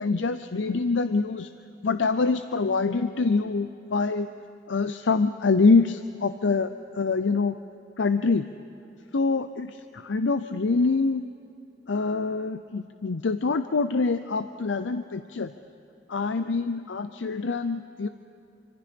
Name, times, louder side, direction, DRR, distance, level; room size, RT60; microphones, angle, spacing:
voice 1, 0.0-1.5 1.8-4.3 4.7-7.6 8.0-8.5 9.1-11.2 11.9-15.5 16.1-18.1, left 4 dB, 85° left, 10 dB, 0.6 m, -25 dB
26.0 x 25.0 x 5.2 m, 2.8 s
head